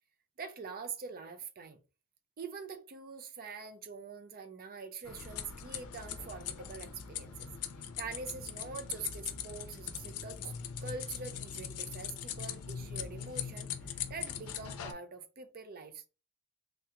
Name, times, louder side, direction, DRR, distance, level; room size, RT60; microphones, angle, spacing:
voice 1, 0.4-1.8 2.4-7.5 8.0-10.5 10.8-16.0, right 5 dB, 45° right, 0.5 m, -44 dB
sound 1, 5.0-14.9, left 8 dB, 85° left, 0.5 m, -41 dB
3.3 x 2.9 x 2.4 m
head